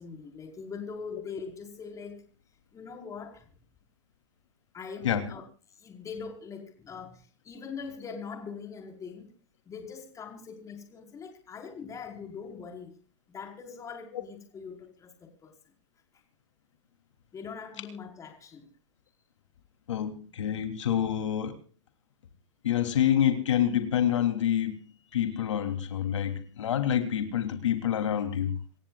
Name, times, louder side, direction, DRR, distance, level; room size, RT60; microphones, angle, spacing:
voice 1, 0.0-2.3 2.7-3.5 4.7-5.4 5.8-9.3 9.6-12.9 13.3-15.5 17.3-18.7, left 5 dB, 20° left, 5.0 m, -42 dB
voice 2, 19.9-21.6 22.6-24.8 25.1-28.6, left 10 dB, 85° left, 3.2 m, -27 dB
27.0 x 15.0 x 2.5 m
hypercardioid pair, 130°, 15 cm